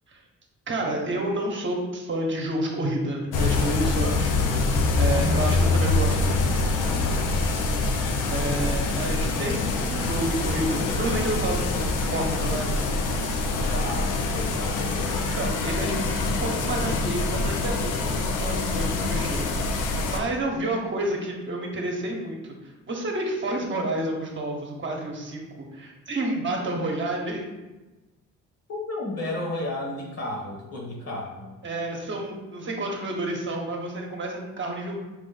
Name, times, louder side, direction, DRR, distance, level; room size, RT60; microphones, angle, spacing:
voice 1, 0.7-4.3 5.0-6.4 8.3-12.9 15.3-27.4 31.6-34.9, right 1 dB, 40° right, 0 dB, 1.0 m, -30 dB
sound 1, 3.3-20.2, left 3 dB, 90° left, 0.6 m, -25 dB
voice 2, 4.1-4.6 6.9-7.2 13.6-15.0 28.7-31.6, left 2 dB, 55° left, -1 dB, 1.4 m, -33 dB
4.8 x 2.5 x 3.9 m, 1.1 s
cardioid pair, 90°, 30 cm